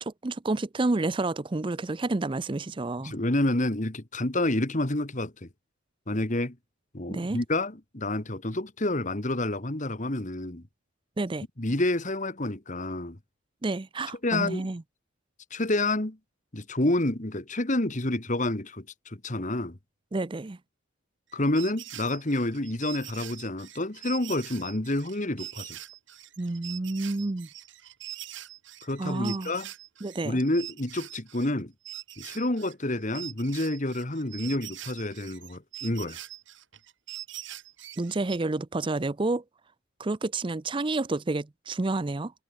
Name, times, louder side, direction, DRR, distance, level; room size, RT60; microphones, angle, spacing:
voice 1, 0.0-3.2 7.1-7.4 11.2-11.5 13.6-14.8 20.1-20.6 26.4-27.5 29.0-29.5 30.0-30.4 38.0-39.4 40.0-42.3, right 2 dB, 25° right, 0.5 m, -29 dB
voice 2, 3.0-5.5 6.1-6.6 6.9-10.6 11.6-13.2 14.2-14.7 15.5-16.2 16.5-19.8 21.3-25.8 28.8-29.7 30.2-31.7 32.2-36.2, left 1 dB, 35° left, 1.8 m, -29 dB
sound 1, 21.3-31.6 31.9-38.4, right 13 dB, 60° right, 1.6 m, -43 dB
head